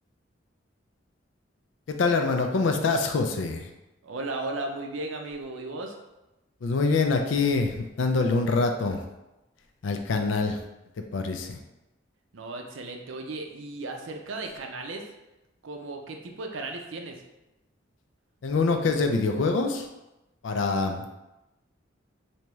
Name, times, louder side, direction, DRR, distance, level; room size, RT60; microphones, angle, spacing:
voice 1, 1.9-3.7 6.6-9.0 9.8-10.6 11.1-11.6 18.4-19.9 20.4-21.1, left 3 dB, 75° left, 5 dB, 0.4 m, -25 dB
voice 2, 4.0-5.9 12.3-15.1 15.6-17.2, right 2 dB, 80° right, 3 dB, 0.5 m, -35 dB
3.4 x 2.8 x 3.0 m, 0.97 s
head